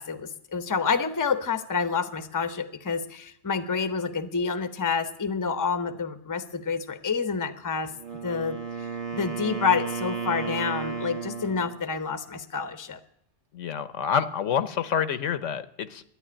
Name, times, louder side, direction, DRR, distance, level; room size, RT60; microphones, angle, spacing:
voice 1, 0.0-7.9 8.2-13.0, left 5 dB, 20° left, 11 dB, 0.7 m, -28 dB
Wind instrument woodwind instrument, 7.9-11.8, right 6 dB, 30° right, 1.2 m, -33 dB
voice 2, 13.5-16.0, left 7 dB, 75° left, 13 dB, 1.1 m, -27 dB
12.5 x 9.6 x 9.9 m, 0.73 s
omnidirectional pair, 1.3 m